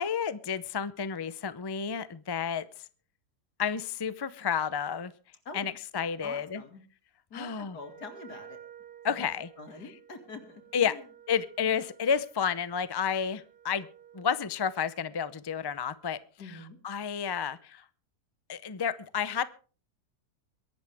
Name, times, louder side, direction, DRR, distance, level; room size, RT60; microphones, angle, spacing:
voice 1, 0.0-2.6 3.6-5.1 5.5-6.6 7.3-7.8 9.0-9.5 10.7-10.9 11.3-13.9 14.1-17.8 18.5-19.4, left 7 dB, 40° left, 15 dB, 0.3 m, -31 dB
voice 2, 6.2-6.8 7.3-8.6 9.1-9.2 9.6-11.0 16.4-16.8, left 3 dB, 85° left, 5 dB, 3.1 m, -45 dB
Wind instrument woodwind instrument, 7.8-14.4, right 9 dB, 40° right, 1.2 m, -53 dB
22.5 x 11.5 x 3.5 m, 0.38 s
omnidirectional pair, 1.7 m